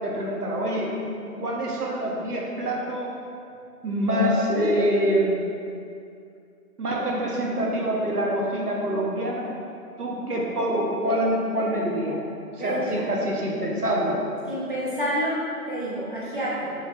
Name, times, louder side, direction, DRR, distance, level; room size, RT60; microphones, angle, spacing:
voice 1, 0.0-3.1 3.8-5.4 6.8-9.5 10.0-12.2 12.6-14.2, equal, 70° right, -2 dB, 1.1 m, -25 dB
voice 2, 12.6-13.1 14.5-15.4 15.7-16.7, equal, 35° left, -7 dB, 0.6 m, -28 dB
6.0 x 3.3 x 2.4 m, 2.4 s
figure-of-eight pair, 170°, 47 cm